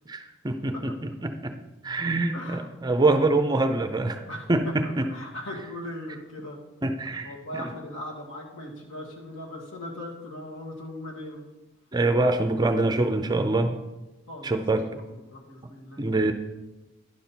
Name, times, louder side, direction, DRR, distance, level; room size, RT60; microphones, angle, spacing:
voice 1, 0.1-0.9 1.2-1.5 1.8-4.2 4.5-5.1 6.8-7.3 11.9-13.8 14.4-14.9 16.0-16.3, right 2 dB, 20° right, 7 dB, 0.5 m, -24 dB
voice 2, 2.3-2.7 4.2-6.6 7.2-11.5 14.3-16.1, left 1 dB, 70° left, -1 dB, 1.9 m, -39 dB
11.0 x 5.4 x 4.4 m, 1.0 s
head